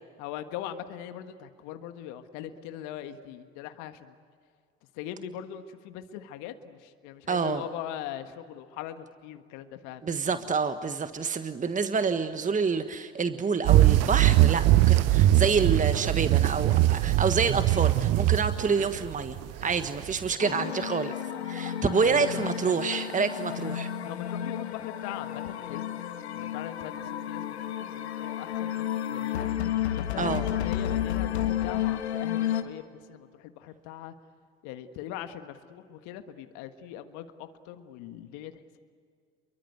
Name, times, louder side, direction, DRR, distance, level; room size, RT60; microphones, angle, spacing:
voice 1, 0.2-4.1 4.9-10.5 22.0-22.4 24.0-26.0 26.3-29.5 29.9-34.1 34.6-38.8, left 11 dB, 65° left, 8 dB, 1.6 m, -41 dB
voice 2, 7.3-7.6 10.0-21.1 21.4-23.9 30.2-30.4, right 5 dB, 25° right, 9 dB, 1.5 m, -28 dB
sound 1, 13.6-20.3, right 15 dB, 55° right, 1.0 m, -22 dB
sound 2, 20.4-32.6, left 11 dB, 85° left, 1.6 m, -32 dB
29.5 x 23.0 x 8.1 m, 2.1 s
hypercardioid pair, 65°, 32 cm